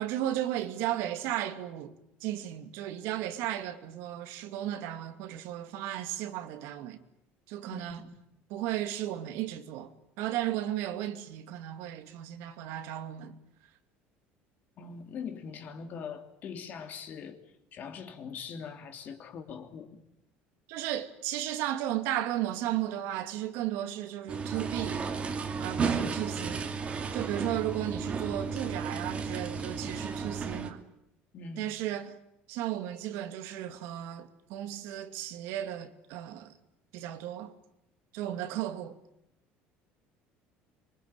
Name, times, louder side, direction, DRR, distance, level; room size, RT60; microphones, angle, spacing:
voice 1, 0.0-1.9 2.2-7.0 7.5-8.0 8.5-9.9 10.2-13.4 20.7-25.0 25.6-26.7 27.1-30.8 31.6-32.1 32.5-36.5 36.9-37.5 38.1-39.0, right 12 dB, 70° right, 2.5 m, -34 dB
voice 2, 7.7-8.1 14.8-17.4 17.7-20.0 31.3-31.8, left 6 dB, 40° left, 3.2 m, -42 dB
sound 1, 24.3-30.7, right 5 dB, 25° right, 2.5 m, -33 dB
25.5 x 24.0 x 9.0 m
cardioid pair, 150°, 4 cm